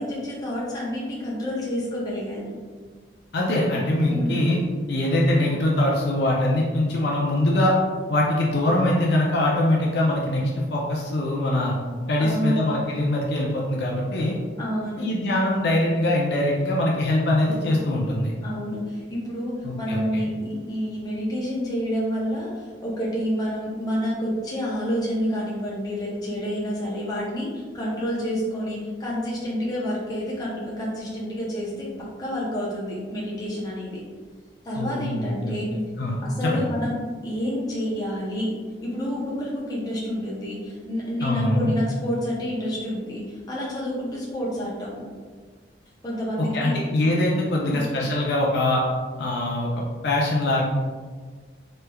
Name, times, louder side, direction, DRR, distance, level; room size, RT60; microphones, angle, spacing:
voice 1, 0.0-2.6 4.1-4.4 12.2-12.7 14.6-15.1 18.4-34.0 34.6-35.8 36.2-37.0 37.2-38.5 38.8-45.0 46.0-46.8 47.5-47.8, equal, 20° left, -5 dB, 0.6 m, -29 dB
voice 2, 3.3-4.6 4.9-7.7 8.1-11.8 12.1-14.4 15.0-18.3 19.6-20.3 34.8-35.5 36.0-36.7 41.2-41.7 46.4-48.8 49.2-50.6, left 1 dB, 55° left, -3 dB, 0.4 m, -23 dB
3.3 x 3.1 x 2.2 m, 1.5 s
head